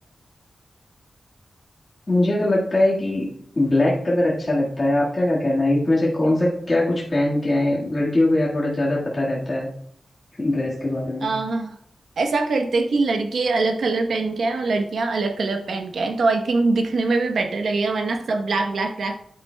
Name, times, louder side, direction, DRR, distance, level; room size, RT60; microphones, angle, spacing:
voice 1, 2.1-3.3 3.6-9.7 10.4-11.3, left 1 dB, 30° left, -6 dB, 1.7 m, -21 dB
voice 2, 11.2-11.8 12.2-19.1, right 3 dB, 90° right, 5 dB, 1.0 m, -23 dB
9.7 x 8.3 x 2.3 m, 0.64 s
wide cardioid pair, 145°, 0 cm